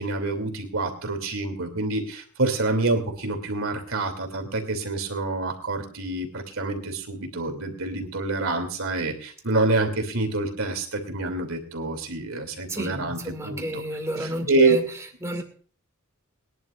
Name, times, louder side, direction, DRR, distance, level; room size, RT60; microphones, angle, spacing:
voice 1, 0.0-13.8 14.2-14.8, right 2 dB, 65° right, 5 dB, 2.9 m, -27 dB
voice 2, 12.7-14.8 15.2-15.4, equal, 15° right, 4 dB, 2.1 m, -30 dB
22.0 x 11.0 x 2.5 m, 0.43 s
head